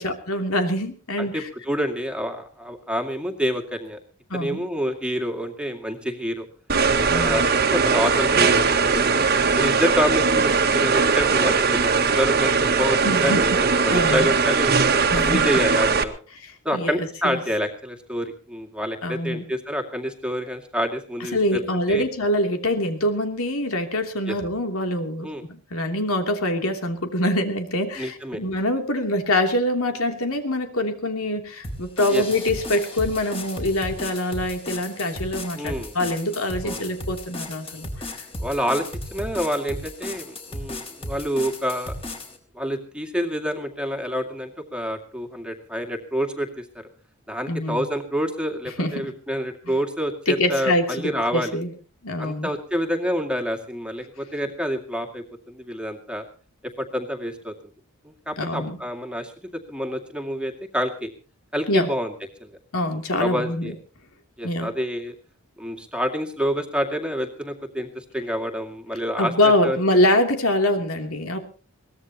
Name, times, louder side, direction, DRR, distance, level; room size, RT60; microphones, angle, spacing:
voice 1, 0.0-1.5 4.3-4.6 7.1-7.4 13.0-13.6 13.9-14.3 15.1-15.4 16.4-17.4 19.0-19.4 21.2-38.2 47.5-47.9 48.8-49.1 49.7-49.8 50.3-51.7 52.0-52.5 58.4-58.8 61.7-61.9 62.7-63.7 64.4-64.7 69.2-71.4, left 1 dB, 75° left, 5 dB, 3.0 m, -24 dB
voice 2, 1.2-4.0 4.3-6.5 7.1-7.4 7.7-9.1 9.6-13.5 13.8-14.7 15.1-16.1 16.6-21.6 21.9-22.1 24.3-24.4 25.2-25.4 28.0-28.4 32.1-32.2 35.5-35.9 36.6-36.9 38.4-38.9 39.1-41.9 42.5-46.9 47.3-51.5 52.2-56.2 56.8-57.5 58.0-61.1 61.5-62.1 62.4-62.5 63.2-63.7 64.4-65.1 65.6-69.3 69.6-69.8, equal, 5° right, 4 dB, 2.3 m, -27 dB
sound 1, 6.7-16.0, right 5 dB, 45° right, 1.6 m, -20 dB
sound 2, 31.6-42.4, left 1 dB, 25° left, 4.0 m, -35 dB
22.5 x 18.5 x 3.0 m, 0.37 s
head